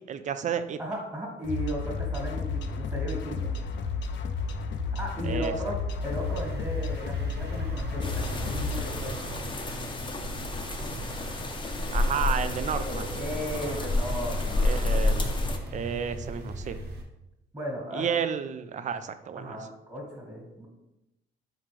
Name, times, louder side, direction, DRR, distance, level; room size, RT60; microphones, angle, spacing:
voice 1, 0.1-0.8 5.2-5.5 11.9-13.1 14.6-15.3 15.7-16.8 17.9-19.6, right 7 dB, 40° right, 11 dB, 0.4 m, -31 dB
voice 2, 0.8-3.5 4.9-9.1 12.7-15.0 17.5-18.1 19.3-20.7, equal, 20° right, -3 dB, 1.4 m, -36 dB
sound 1, 1.4-8.9, left 4 dB, 65° left, 0.5 m, -32 dB
sound 2, 6.0-17.0, right 2 dB, 55° right, 1.2 m, -39 dB
sound 3, 8.0-15.6, left 2 dB, 25° left, 0.6 m, -30 dB
4.4 x 3.8 x 3.1 m, 0.91 s
cardioid pair, 90°, 20 cm